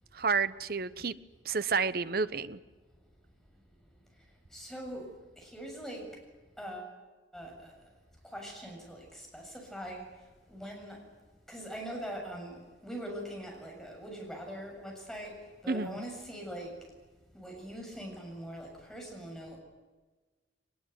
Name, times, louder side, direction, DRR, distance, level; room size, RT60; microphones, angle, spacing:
voice 1, 0.1-1.2 1.4-2.6 15.7-16.0, right 5 dB, 55° right, 14 dB, 0.9 m, -30 dB
voice 2, 4.5-6.2 6.6-6.9 7.3-7.7 8.2-10.1 10.5-11.0 11.5-16.7 17.3-19.6, equal, ahead, 0 dB, 7.2 m, -42 dB
22.5 x 20.5 x 9.4 m, 1.3 s
head